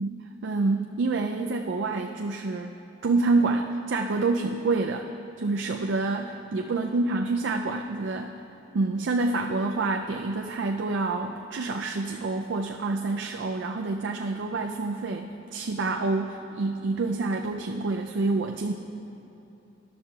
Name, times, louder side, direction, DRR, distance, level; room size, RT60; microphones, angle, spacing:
voice 1, 0.0-2.8 3.0-5.1 5.4-8.4 8.7-18.7, right 3 dB, 80° right, 3 dB, 0.4 m, -27 dB
13.5 x 11.0 x 2.3 m, 3.0 s
head